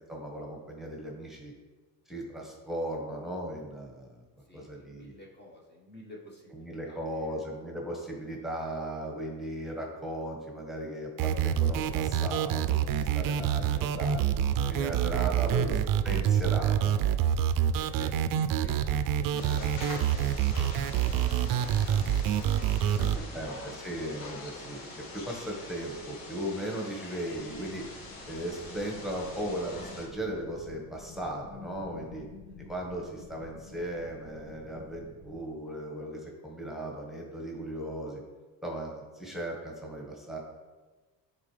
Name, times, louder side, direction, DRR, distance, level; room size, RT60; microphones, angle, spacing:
voice 1, 0.1-1.5 2.1-4.1 4.5-5.1 6.5-14.2 14.7-15.8 16.0-17.0 23.3-24.9 25.1-27.8 28.3-32.3 32.7-38.2 38.6-40.4, right 1 dB, ahead, -1 dB, 1.5 m, -37 dB
voice 2, 4.5-7.4 13.1-14.1 15.3-15.8 17.7-23.3 31.9-32.2 32.5-32.7, left 1 dB, 30° left, -2 dB, 1.3 m, -50 dB
sound 1, 11.2-23.2, right 9 dB, 60° right, 0.5 m, -27 dB
sound 2, 19.3-30.1, left 2 dB, 70° left, 1.6 m, -44 dB
sound 3, 27.3-35.4, left 4 dB, 85° left, 1.8 m, -50 dB
9.8 x 4.1 x 3.3 m, 1.3 s
cardioid pair, 100°, 37 cm